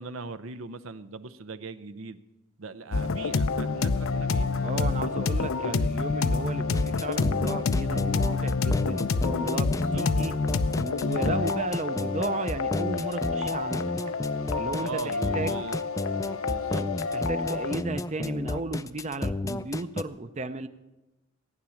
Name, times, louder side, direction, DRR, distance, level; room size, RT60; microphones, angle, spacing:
voice 1, 0.0-2.2 2.6-4.5 4.9-5.9 9.7-10.2 14.8-15.8 16.4-16.9, right 4 dB, 80° right, 13 dB, 0.7 m, -40 dB
sound 1, 2.9-17.8, left 4 dB, 90° left, 0.6 m, -28 dB
voice 2, 4.6-10.3 10.8-13.9 14.5-15.6 17.1-20.7, right 3 dB, 35° right, 11 dB, 0.6 m, -34 dB
sound 2, 6.7-20.0, left 2 dB, 15° left, 0.4 m, -32 dB
15.0 x 9.7 x 7.1 m, 1.0 s
head